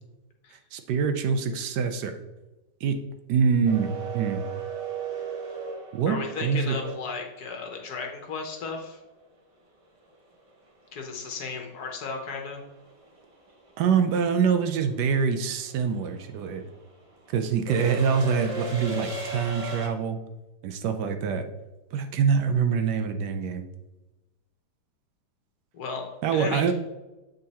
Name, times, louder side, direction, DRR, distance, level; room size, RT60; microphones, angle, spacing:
voice 1, 0.7-2.2 2.8-3.0 3.3-4.4 5.9-6.8 13.8-16.6 17.3-20.2 20.6-21.4 21.9-23.6 26.2-26.7, right 6 dB, 75° right, 8 dB, 1.2 m, -25 dB
sound 1, 3.6-7.7 10.1-10.2 11.5-11.8 12.1-19.9, right 4 dB, 35° right, 0.5 m, -36 dB
voice 2, 6.1-9.0 10.9-12.6 25.7-26.7, left 4 dB, 60° left, 2 dB, 1.4 m, -35 dB
8.1 x 3.8 x 4.1 m, 1.1 s
omnidirectional pair, 1.9 m